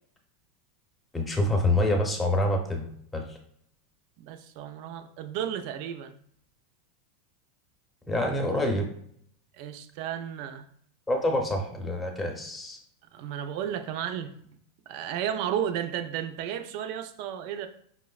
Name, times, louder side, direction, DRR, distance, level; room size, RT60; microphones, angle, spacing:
voice 1, 1.1-2.9 3.1-3.4 8.1-8.9 11.1-12.8, left 1 dB, 15° left, 2 dB, 0.8 m, -26 dB
voice 2, 4.2-6.1 9.5-10.7 13.1-14.3 14.9-17.7, right 9 dB, 60° right, 8 dB, 0.4 m, -33 dB
5.2 x 2.0 x 2.3 m, 0.66 s
supercardioid pair, 120°, 0 cm